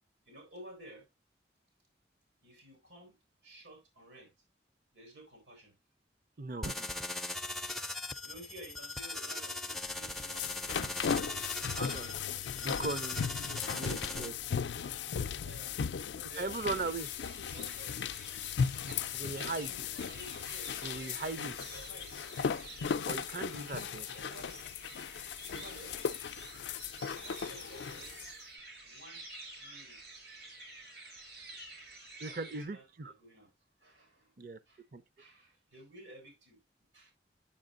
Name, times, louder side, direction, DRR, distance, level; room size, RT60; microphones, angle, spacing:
voice 1, 0.2-1.1 2.4-4.3 4.9-5.8 8.2-10.7 11.4-12.8 15.4-15.8 16.1-16.5 17.3-18.0 18.9-20.8 21.7-22.2 24.1-24.7 25.5-26.0 27.0-28.2 28.8-29.2 29.6-30.0 31.6-33.5 33.8-34.3 34.7-34.9 35.2-36.6 36.9-37.1, right 1 dB, 85° right, 4.1 m, -54 dB
voice 2, 6.4-6.9 11.7-12.1 12.6-14.3 16.4-17.1 19.1-19.7 20.8-21.6 23.1-24.1 32.2-33.1 34.4-34.6 34.9-35.0, right 3 dB, 50° right, 0.6 m, -39 dB
sound 1, 6.6-14.3, left 2 dB, ahead, 0.4 m, -40 dB
sound 2, 9.9-28.3, left 6 dB, 80° left, 0.4 m, -37 dB
sound 3, 16.3-32.7, right 2 dB, 70° right, 3.6 m, -50 dB
8.8 x 7.3 x 2.5 m
head